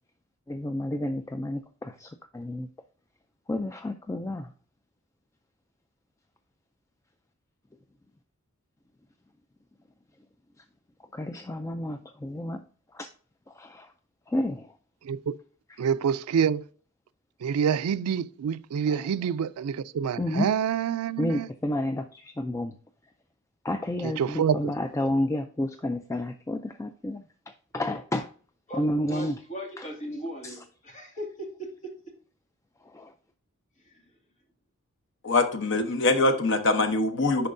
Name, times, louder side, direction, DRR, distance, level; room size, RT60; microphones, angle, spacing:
voice 1, 0.5-2.7 3.5-4.5 11.1-12.6 12.9-13.1 13.6-13.9 14.3-14.7 18.9-19.0 20.2-20.5 21.2-22.7 23.6-27.2 27.7-28.3 28.7-29.4 29.8-29.9 30.4-30.5 32.9-33.1, left 1 dB, 15° left, 0.3 m, -30 dB
voice 2, 15.0-15.4 15.8-16.6 17.4-21.5 24.0-24.7, right 7 dB, 85° right, 0.4 m, -27 dB
voice 3, 29.1-31.3 31.6-31.7 33.8-34.0, equal, 35° left, 2.1 m, -38 dB
voice 4, 35.2-37.5, left 2 dB, 55° left, 0.9 m, -23 dB
10.5 x 4.4 x 2.6 m
head